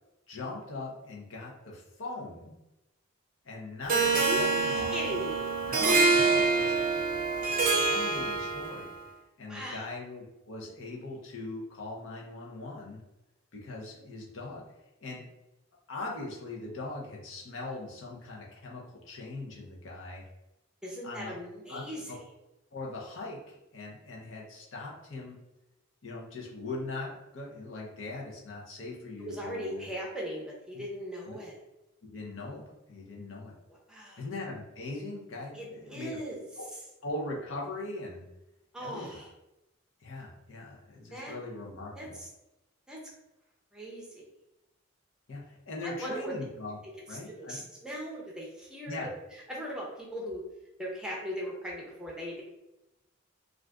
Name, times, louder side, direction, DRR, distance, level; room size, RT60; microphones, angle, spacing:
voice 1, 0.3-2.6 3.4-4.9 5.7-8.9 9.4-13.0 13.5-14.6 15.0-15.2 15.9-20.2 21.0-21.4 21.7-21.9 22.7-25.4 26.0-29.8 30.7-30.8 31.3-31.4 32.0-33.5 34.2-36.2 36.6-36.7 37.0-38.2 38.8-39.0 40.0-42.2 45.3-46.8 47.1-47.6 48.9-49.1, left 2 dB, 70° left, -2 dB, 0.7 m, -40 dB
voice 2, 3.9-4.4 4.9-5.5 9.5-9.8 20.8-22.3 29.2-31.6 33.7-34.3 35.5-36.4 38.7-39.3 41.1-41.3 42.0-42.3 42.9-43.0 43.7-44.2 45.8-46.3 47.1-49.0 49.3-50.4 50.8-52.4, equal, 5° right, -3 dB, 0.6 m, -39 dB
Harp, 3.9-8.9, right 4 dB, 45° right, 0.5 m, -26 dB
2.4 x 2.4 x 3.4 m, 0.95 s
head